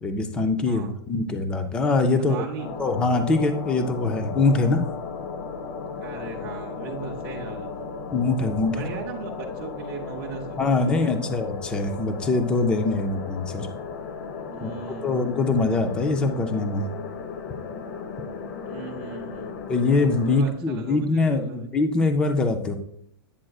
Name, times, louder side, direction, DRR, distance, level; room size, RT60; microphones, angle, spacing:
voice 1, 0.0-2.4 2.8-4.9 8.1-8.8 10.6-13.7 14.6-14.7 15.0-16.9 19.7-22.8, left 3 dB, 5° left, 7 dB, 0.4 m, -23 dB
voice 2, 2.3-2.7 6.0-7.7 8.7-11.4 14.5-15.3 18.6-19.6 20.3-21.7, right 6 dB, 25° right, -3 dB, 0.7 m, -38 dB
sound 1, 2.6-20.4, left 5 dB, 45° left, 0.7 m, -35 dB
8.6 x 7.6 x 2.3 m, 0.69 s
supercardioid pair, 170°, 13 cm